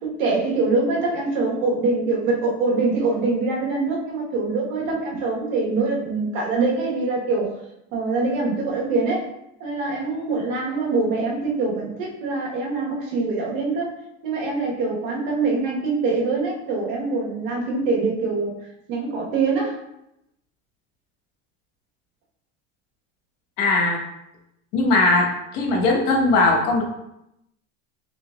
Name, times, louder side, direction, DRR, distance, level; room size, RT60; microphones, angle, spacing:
voice 1, 0.0-7.5 7.9-9.3 9.6-13.9 14.2-18.5 18.9-19.8, right 3 dB, 85° right, -3 dB, 1.4 m, -24 dB
voice 2, 23.6-24.0 24.7-26.8, left 2 dB, 75° left, 0 dB, 1.2 m, -19 dB
4.0 x 3.8 x 2.4 m, 0.83 s
supercardioid pair, 125°, 38 cm